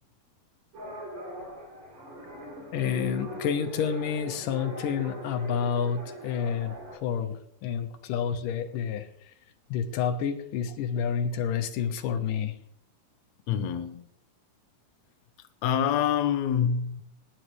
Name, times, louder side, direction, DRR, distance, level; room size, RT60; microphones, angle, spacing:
japanese or korean, 0.7-6.9, right 1 dB, 45° right, 3.8 m, -40 dB
voice 1, 2.7-9.3 9.7-12.5, left 7 dB, 85° left, 2.6 m, -29 dB
voice 2, 13.5-14.1 15.4-17.0, left 8 dB, 70° left, 1.9 m, -27 dB
20.0 x 10.5 x 3.2 m
omnidirectional pair, 3.7 m